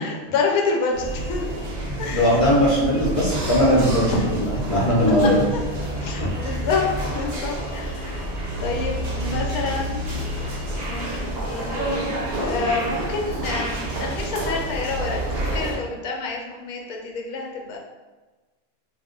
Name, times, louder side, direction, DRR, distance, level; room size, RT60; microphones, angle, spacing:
voice 1, 0.0-1.5 2.0-2.4 4.1-4.3 4.5-4.6 5.5-5.6 6.0-8.2 8.6-10.1 10.4-10.5 10.8-17.8, left 4 dB, 80° left, 1 dB, 1.0 m, -28 dB
sound 1, 0.9-15.8, right 1 dB, 65° right, 0.4 m, -28 dB
voice 2, 1.9-5.4 6.2-6.3, equal, 35° left, -6 dB, 0.5 m, -19 dB
2.4 x 2.1 x 3.6 m, 1.2 s
omnidirectional pair, 1.5 m